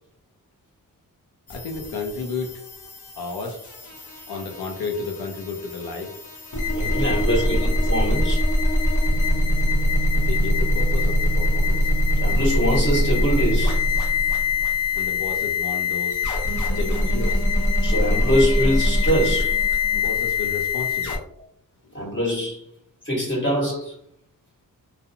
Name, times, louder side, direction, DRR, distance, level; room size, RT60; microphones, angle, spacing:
voice 1, 1.5-2.6 3.2-3.6 4.3-6.1 7.1-7.7 10.2-11.9 15.0-16.2 16.7-17.4 19.9-21.2 21.8-21.9, left 4 dB, 85° left, 2 dB, 0.5 m, -32 dB
sound 1, 1.5-21.2, left 2 dB, 55° left, 0.7 m, -23 dB
voice 2, 6.7-8.4 12.2-13.8 17.8-19.6 21.9-22.6 23.0-23.9, equal, 30° left, -5 dB, 1.4 m, -23 dB
2.6 x 2.0 x 2.7 m, 0.67 s
wide cardioid pair, 115°, 36 cm